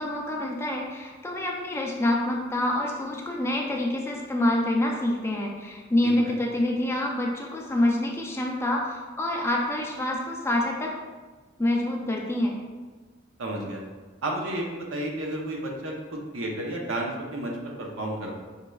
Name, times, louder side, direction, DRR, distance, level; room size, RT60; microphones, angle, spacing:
voice 1, 0.0-10.9 11.6-12.6, left 1 dB, 15° left, -1 dB, 0.4 m, -27 dB
voice 2, 6.0-6.3 13.4-13.8 14.2-18.4, right 1 dB, 85° right, 0 dB, 0.8 m, -32 dB
5.3 x 3.1 x 2.3 m, 1.3 s
head